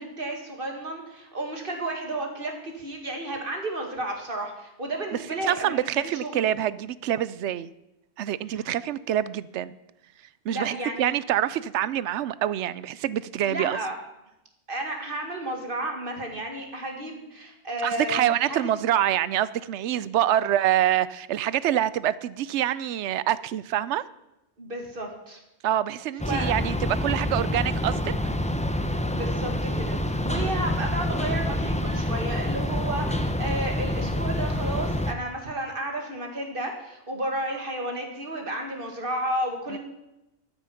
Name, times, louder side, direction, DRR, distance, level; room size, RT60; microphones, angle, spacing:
voice 1, 0.0-6.4 10.5-11.1 13.5-14.0 14.7-18.6 24.6-25.4 26.2-26.6 29.1-39.8, right 1 dB, 50° right, 3 dB, 2.1 m, -32 dB
voice 2, 5.4-7.7 8.2-9.7 10.5-13.8 17.8-24.1 25.6-28.1 30.3-30.6 39.7-39.8, right 11 dB, 80° right, 18 dB, 0.9 m, -26 dB
sound 1, 26.2-35.1, left 1 dB, 10° left, 0.6 m, -27 dB
12.5 x 9.4 x 5.8 m, 0.92 s
omnidirectional pair, 1.2 m